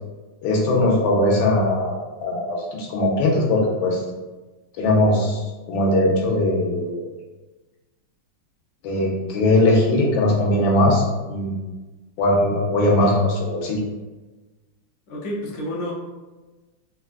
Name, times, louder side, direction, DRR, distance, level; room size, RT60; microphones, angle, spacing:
voice 1, 0.4-4.0 4.8-7.0 8.8-11.5 12.2-13.9, left 1 dB, 85° left, -1 dB, 1.4 m, -20 dB
voice 2, 15.1-15.9, left 1 dB, 65° left, -2 dB, 1.0 m, -29 dB
3.6 x 2.3 x 2.4 m, 1.2 s
omnidirectional pair, 2.1 m